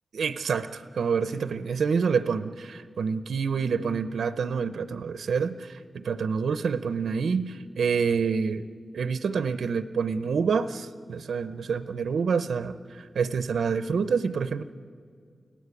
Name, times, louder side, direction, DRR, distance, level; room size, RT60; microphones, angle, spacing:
voice 1, 0.1-8.6 8.9-14.6, right 5 dB, 90° right, 13 dB, 0.7 m, -27 dB
29.0 x 18.0 x 8.3 m, 2.2 s
wide cardioid pair, 80°, 0 cm